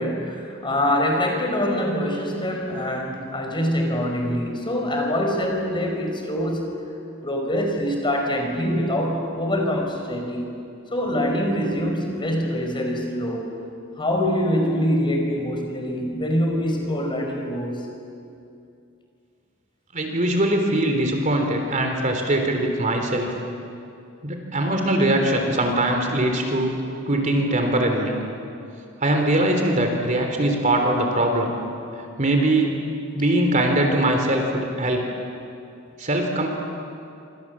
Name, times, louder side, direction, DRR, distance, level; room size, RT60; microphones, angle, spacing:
voice 1, 0.0-6.8 7.2-10.6 10.9-13.5 14.0-17.9, equal, 25° left, 1 dB, 5.0 m, -24 dB
voice 2, 19.9-23.3 24.2-26.7 27.1-28.2 29.0-31.5 32.2-32.8 33.1-35.1 36.0-36.5, right 1 dB, 40° right, 3 dB, 3.4 m, -21 dB
28.0 x 26.0 x 7.5 m, 2.6 s
head